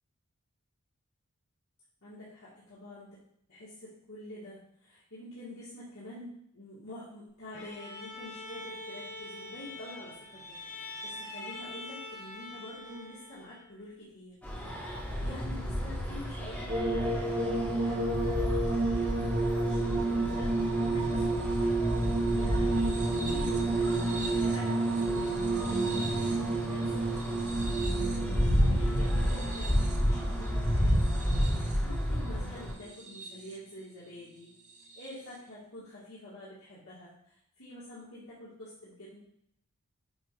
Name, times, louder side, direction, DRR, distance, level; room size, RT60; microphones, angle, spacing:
voice 1, 2.0-3.2 3.5-15.0 15.2-18.6 18.9-34.5 34.9-37.1 37.6-39.2, left 1 dB, 75° left, -11 dB, 2.1 m, -47 dB
Bowed string instrument, 7.5-13.8, left 2 dB, 55° left, 2.5 m, -44 dB
sound 1, 14.4-32.7, equal, 10° left, 1.2 m, -31 dB
sound 2, 16.7-31.9 32.8-33.5 34.9-35.1, right 2 dB, 35° right, 0.8 m, -31 dB
7.8 x 2.6 x 4.8 m, 0.71 s
head